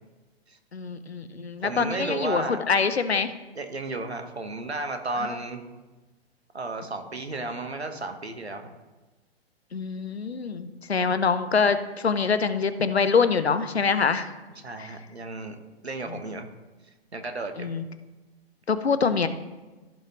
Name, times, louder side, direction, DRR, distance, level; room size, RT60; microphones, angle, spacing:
voice 1, 0.7-3.3 9.7-14.3 14.8-14.9 16.1-16.2 17.6-17.8 18.7-19.3, left 5 dB, 80° left, 12 dB, 0.8 m, -25 dB
voice 2, 1.6-2.6 3.5-5.6 6.5-8.6 14.6-15.6 15.8-16.5 17.1-17.7, right 3 dB, 80° right, 6 dB, 1.2 m, -33 dB
15.0 x 5.7 x 3.0 m, 1.2 s
figure-of-eight pair, 110°, 31 cm